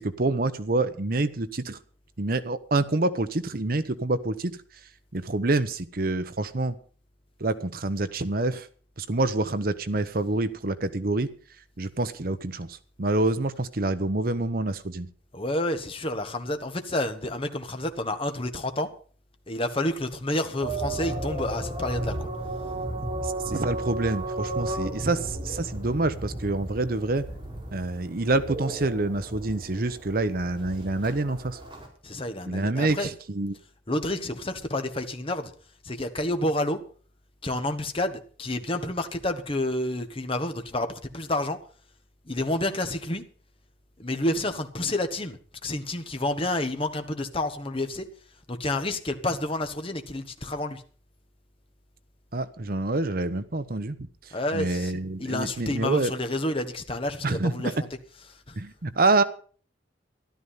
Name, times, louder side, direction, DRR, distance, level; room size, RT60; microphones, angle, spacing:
voice 1, 0.0-1.8 2.2-4.5 5.1-6.7 7.4-8.7 9.0-11.3 11.8-15.1 23.2-27.2 27.7-31.6 32.5-33.6 52.3-54.0 54.5-56.1 57.2-57.5 58.6-59.2, right 2 dB, 50° right, 0.9 m, -27 dB
voice 2, 15.3-18.9 19.5-22.3 32.0-33.1 33.9-35.5 35.8-36.8 37.4-41.6 42.3-43.2 44.0-45.4 45.6-48.1 48.5-50.8 54.3-57.9 58.5-58.6, left 1 dB, 30° left, 1.4 m, -29 dB
sound 1, 20.6-31.9, right 2 dB, 25° right, 4.3 m, -34 dB
13.0 x 12.0 x 5.7 m
head